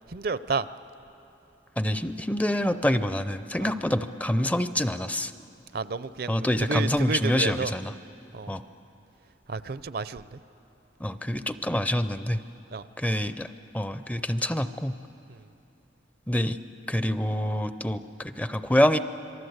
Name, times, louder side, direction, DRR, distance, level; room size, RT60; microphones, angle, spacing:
voice 1, 0.1-0.7 3.6-3.7 5.7-7.7 8.3-8.6 9.5-10.4 12.7-12.9 15.3-15.5, right 4 dB, 55° right, 15 dB, 0.5 m, -31 dB
voice 2, 1.8-5.3 6.3-7.9 8.5-8.6 11.0-12.4 13.0-13.5 13.7-14.9 16.3-16.6 16.9-19.0, left 1 dB, 10° left, 11 dB, 0.5 m, -26 dB
26.5 x 23.5 x 8.0 m, 2.9 s
head